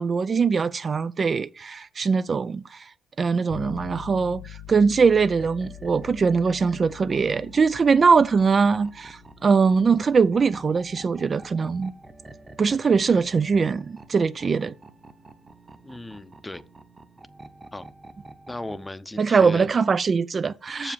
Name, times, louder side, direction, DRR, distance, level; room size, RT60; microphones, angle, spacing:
voice 1, 0.0-2.9 3.2-11.9 12.6-14.7 19.2-20.9, right 5 dB, 40° right, 0.4 m, -22 dB
sound 1, 3.5-13.4, left 11 dB, 70° left, 0.4 m, -45 dB
sound 2, 5.2-18.9, right 2 dB, 20° right, 0.9 m, -48 dB
voice 2, 15.8-16.6 17.7-17.9 18.5-19.7 20.8-20.9, left 2 dB, 15° left, 0.7 m, -36 dB
6.9 x 5.0 x 7.0 m
cardioid pair, 90°, 0 cm